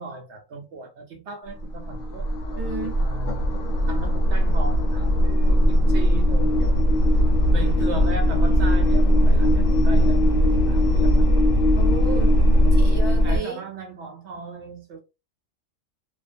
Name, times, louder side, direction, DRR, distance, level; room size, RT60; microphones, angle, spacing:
voice 1, 0.0-3.5 3.9-6.9 7.4-11.3 12.5-15.0, right 3 dB, 70° right, 0.8 m, -37 dB
sound 1, 1.5-13.4, equal, 85° left, 1.0 m, -19 dB
voice 2, 2.6-3.0 11.7-12.4 12.7-13.6, right 4 dB, 30° right, 0.5 m, -32 dB
2.4 x 2.2 x 2.5 m
omnidirectional pair, 1.3 m